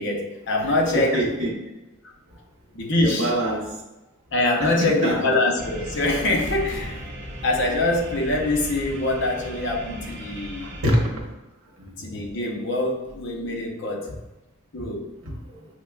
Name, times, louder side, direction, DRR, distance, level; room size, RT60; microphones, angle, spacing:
voice 1, 0.0-1.2 2.7-3.3 4.3-7.0 7.4-10.7 12.0-14.1 14.7-15.1, left 2 dB, 60° left, 0 dB, 0.7 m, -24 dB
voice 2, 0.9-1.5 3.0-3.6 4.6-5.2 10.6-11.3 14.8-14.9 15.2-15.7, right 1 dB, 90° right, -1 dB, 0.9 m, -25 dB
sound 1, 5.6-10.8, right 1 dB, 55° right, 0.8 m, -36 dB
6.1 x 2.1 x 2.3 m, 1.0 s
head